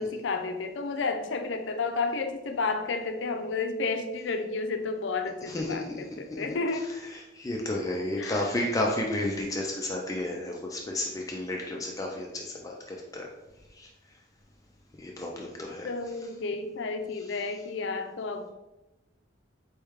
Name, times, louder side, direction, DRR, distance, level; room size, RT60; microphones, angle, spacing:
voice 1, 0.0-7.0 8.2-8.5 15.8-18.5, left 4 dB, 70° left, 7 dB, 0.5 m, -31 dB
voice 2, 5.5-6.0 6.3-6.6 7.1-13.3 13.7-13.9 15.0-15.9, left 1 dB, 20° left, -1 dB, 0.4 m, -32 dB
4.4 x 3.3 x 3.5 m, 0.98 s
head